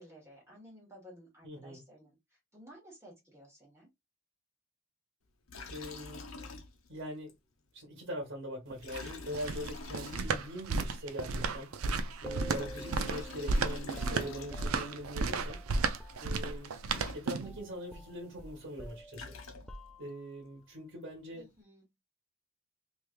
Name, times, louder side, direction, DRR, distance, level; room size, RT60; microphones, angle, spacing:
voice 1, 0.0-3.9 21.3-21.8, equal, 15° right, 1.6 m, -55 dB
voice 2, 1.4-1.8 5.7-6.2 6.9-7.3 7.7-11.7 12.2-15.6 16.2-16.7 17.1-19.3 20.0-21.5, equal, 60° right, 1.5 m, -42 dB
Liquid, 5.5-7.0 7.3-7.4 8.8-10.7 12.3-15.0 16.6-16.7 16.9-17.7 18.9-20.0, left 3 dB, 70° left, 0.9 m, -46 dB
sound 1, 8.7-17.6, right 4 dB, 80° right, 0.5 m, -33 dB
sound 2, 12.2-16.7 16.9-17.2 17.4-20.4, right 1 dB, 5° left, 0.3 m, -49 dB
3.3 x 3.1 x 2.5 m
head